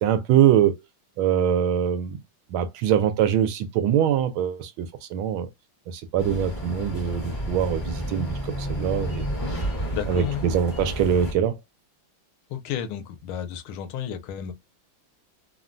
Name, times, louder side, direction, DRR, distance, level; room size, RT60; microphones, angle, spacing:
voice 1, 0.0-0.8 1.2-2.2 2.5-5.5 5.9-9.3 10.1-11.5, right 9 dB, 80° right, 1.4 m, -23 dB
sound 1, 6.2-11.3, equal, 20° left, 1.0 m, -31 dB
voice 2, 9.9-10.4 12.5-14.5, left 9 dB, 90° left, 1.5 m, -32 dB
3.7 x 2.2 x 2.5 m
omnidirectional pair, 2.3 m